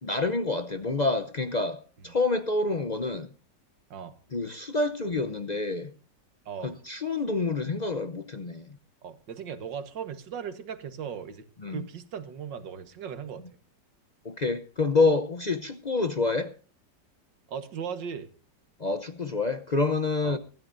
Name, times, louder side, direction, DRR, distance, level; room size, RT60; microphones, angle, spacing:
voice 1, 0.0-3.3 4.3-5.9 6.6-8.7 11.6-11.8 14.2-16.5 18.8-20.4, left 3 dB, 50° left, 0.5 m, -27 dB
voice 2, 6.5-6.8 9.0-13.5 17.5-18.3 20.2-20.4, right 7 dB, 85° right, 2.0 m, -38 dB
24.5 x 13.5 x 2.6 m
omnidirectional pair, 1.9 m